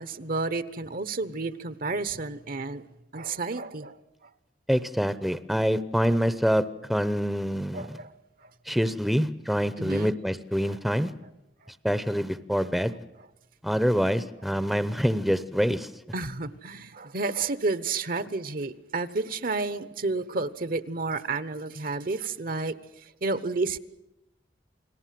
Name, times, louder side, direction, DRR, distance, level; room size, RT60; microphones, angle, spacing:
voice 1, 0.0-2.9 3.1-4.3 7.7-8.5 9.8-10.2 10.7-10.8 16.1-23.8, right 3 dB, 55° right, 1.0 m, -31 dB
voice 2, 4.7-6.6 6.9-7.9 8.7-11.1 11.8-12.9 13.6-15.9, equal, ahead, 0.8 m, -25 dB
29.0 x 19.0 x 7.6 m
head